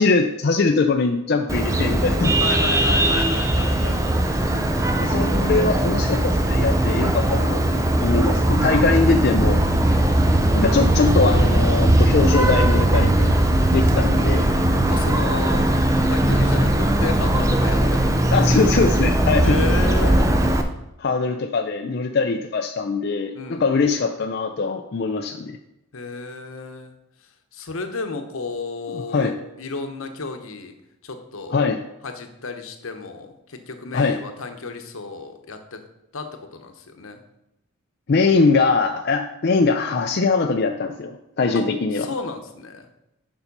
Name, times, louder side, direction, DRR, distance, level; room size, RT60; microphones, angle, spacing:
voice 1, 0.0-2.4 5.0-9.6 10.6-13.3 13.7-14.5 18.3-19.6 21.0-25.6 28.9-29.3 31.5-31.8 33.9-34.2 38.1-42.1, left 4 dB, 50° left, 4 dB, 0.4 m, -22 dB
Vehicle horn car horn honking, 1.5-20.6, right 1 dB, 15° right, 0.5 m, -19 dB
voice 2, 2.4-4.1 9.8-10.1 14.9-15.7 16.1-18.1 19.4-20.5 23.3-23.7 25.9-26.9 27.5-30.7 31.0-31.6 32.0-35.8 36.1-37.2 41.5-41.6 41.9-42.9, left 4 dB, 75° left, 6 dB, 0.9 m, -32 dB
7.1 x 5.5 x 5.3 m, 0.88 s
head